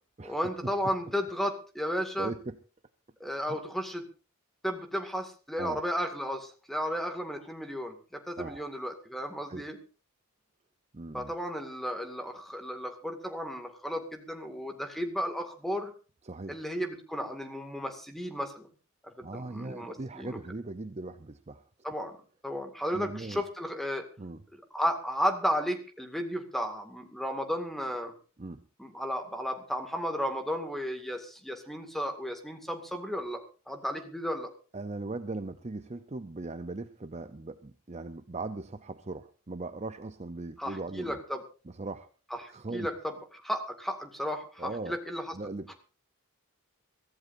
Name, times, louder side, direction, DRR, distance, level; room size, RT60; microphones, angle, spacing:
voice 1, 0.2-2.3 3.2-4.0 4.6-9.8 11.1-15.9 16.5-18.7 19.0-20.4 21.8-22.1 22.4-24.0 24.7-28.1 28.8-33.4 33.7-34.5 40.6-41.4 42.4-45.7, equal, ahead, 6 dB, 2.1 m, -34 dB
voice 2, 2.2-2.6 5.6-5.8 8.4-8.7 9.5-9.6 10.9-11.3 16.2-16.6 19.2-21.6 22.9-23.4 24.2-24.4 28.4-28.6 34.7-41.2 41.7-42.1 42.5-42.9 44.6-45.0 45.3-45.7, right 3 dB, 30° right, 10 dB, 0.7 m, -39 dB
24.0 x 15.0 x 2.7 m, 0.35 s
head